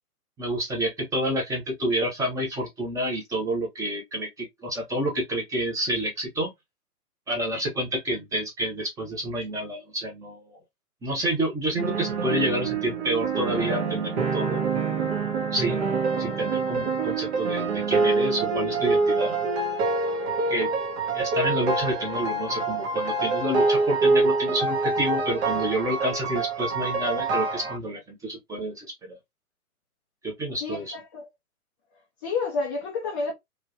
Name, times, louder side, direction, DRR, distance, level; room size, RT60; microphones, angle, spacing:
voice 1, 0.4-6.5 7.3-10.6 11.0-14.7 15.5-19.3 20.5-20.7 21.1-29.2 30.2-30.9, right 1 dB, 5° right, 0.8 m, -29 dB
sound 1, 11.8-27.8, right 3 dB, 45° right, 1.2 m, -26 dB
voice 2, 30.6-31.3 32.2-33.3, left 4 dB, 15° left, 0.5 m, -29 dB
3.1 x 3.0 x 2.5 m
figure-of-eight pair, 130°, 46 cm